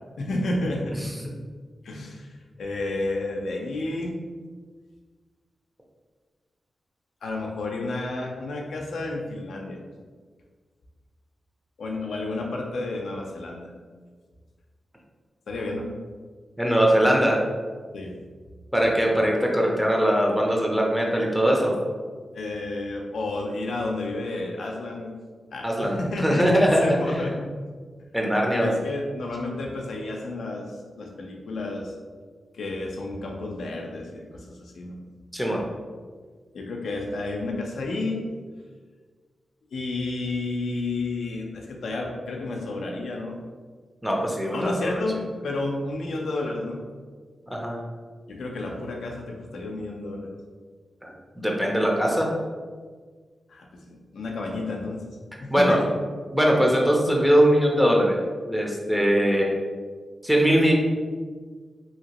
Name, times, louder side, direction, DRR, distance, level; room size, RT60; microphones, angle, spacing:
voice 1, 0.2-1.0 1.8-2.3 2.6-4.2 7.2-9.8 11.8-13.7 15.5-15.9 17.9-18.2 22.3-25.1 25.5-27.5 28.0-28.1 28.5-30.7 31.0-31.9 32.5-35.0 36.5-38.3 39.7-43.4 44.5-46.8 48.3-50.3 53.5-55.1 55.4-55.9, left 2 dB, 85° left, 0 dB, 0.5 m, -31 dB
voice 2, 16.6-17.4 18.7-21.8 25.6-27.0 28.1-28.8 35.3-35.6 44.0-45.0 47.5-47.8 51.0-52.3 55.3-55.8 56.3-58.2 58.5-59.6 60.2-60.7, equal, 5° right, -1 dB, 0.7 m, -21 dB
2.9 x 2.8 x 2.9 m, 1.5 s
cardioid pair, 65°, 0 cm